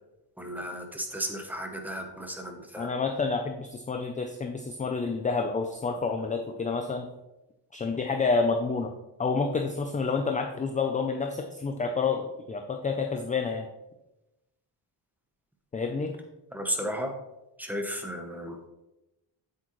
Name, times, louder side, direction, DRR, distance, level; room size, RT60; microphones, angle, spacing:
voice 1, 0.4-2.9 16.5-17.1 17.6-18.6, equal, 5° right, 4 dB, 0.8 m, -34 dB
voice 2, 2.8-7.1 7.7-8.9 9.2-13.7 15.7-16.2, left 4 dB, 20° left, 4 dB, 0.3 m, -29 dB
7.5 x 7.4 x 3.0 m, 0.96 s
wide cardioid pair, 160°, 44 cm